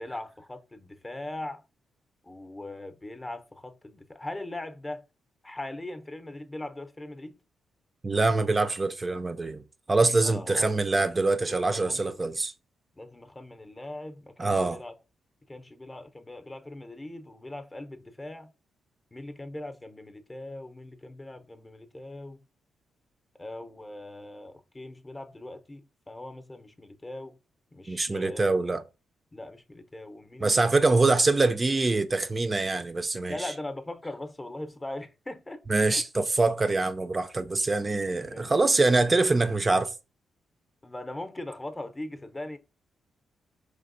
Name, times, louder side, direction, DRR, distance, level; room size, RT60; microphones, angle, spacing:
voice 1, 0.0-1.6 2.2-5.0 5.4-7.4 10.2-10.7 11.5-12.2 13.0-14.9 15.5-18.5 19.1-22.4 23.4-27.4 27.7-28.7 29.3-30.8 33.3-35.6 35.9-36.0 38.2-38.5 40.8-42.6, left 1 dB, 20° left, 0.6 m, -40 dB
voice 2, 8.0-9.6 9.9-12.5 14.4-14.8 27.9-28.8 30.4-33.5 35.7-39.9, right 3 dB, 30° right, 0.4 m, -24 dB
4.5 x 3.2 x 2.5 m
supercardioid pair, 60°, 0 cm